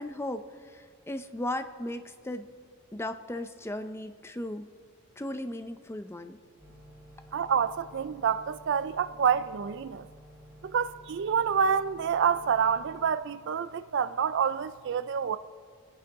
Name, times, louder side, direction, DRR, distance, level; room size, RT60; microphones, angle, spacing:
voice 1, 0.0-2.5 2.9-4.7 5.2-6.4, left 1 dB, 10° left, 0.5 m, -36 dB
sound 1, 6.6-13.2, equal, 15° right, 1.2 m, -53 dB
voice 2, 7.3-10.1 10.6-15.4, right 7 dB, 55° right, 0.4 m, -27 dB
25.0 x 9.6 x 3.6 m
head